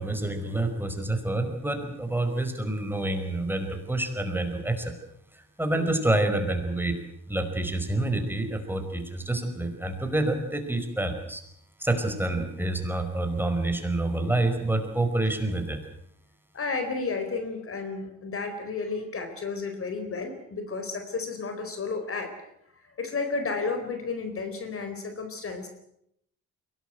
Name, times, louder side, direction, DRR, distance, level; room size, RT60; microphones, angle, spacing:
voice 1, 0.0-4.9 5.3-6.9 7.3-11.4 11.8-15.8, right 2 dB, 5° right, 5 dB, 5.1 m, -28 dB
voice 2, 16.5-22.3 23.0-25.7, left 4 dB, 45° left, 7 dB, 4.4 m, -32 dB
22.5 x 18.5 x 9.1 m, 0.75 s
cardioid pair, 90°, 30 cm